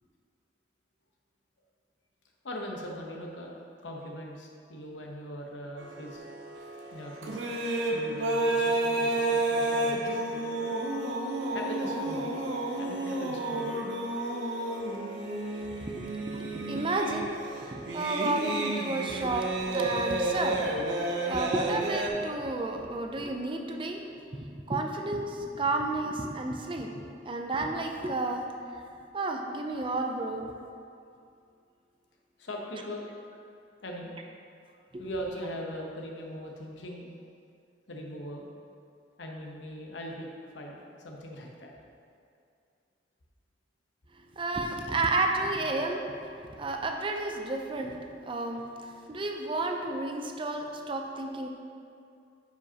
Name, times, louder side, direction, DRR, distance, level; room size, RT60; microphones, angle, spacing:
voice 1, 2.4-3.6 3.8-6.2 6.9-7.6 7.9-10.8 11.5-12.5 12.8-13.9 32.4-33.1 33.8-34.1 35.0-37.1 37.9-38.5 39.2-41.7, equal, 85° left, 0 dB, 1.0 m, -40 dB
sound 1, 5.8-22.1, right 2 dB, 85° right, 0.8 m, -31 dB
voice 2, 15.8-17.3 17.6-27.0 27.3-28.5 28.7-28.8 29.1-30.5 44.4-48.0 48.3-51.5, right 2 dB, 30° right, 3 dB, 0.5 m, -32 dB
9.5 x 5.0 x 2.9 m, 2.4 s
head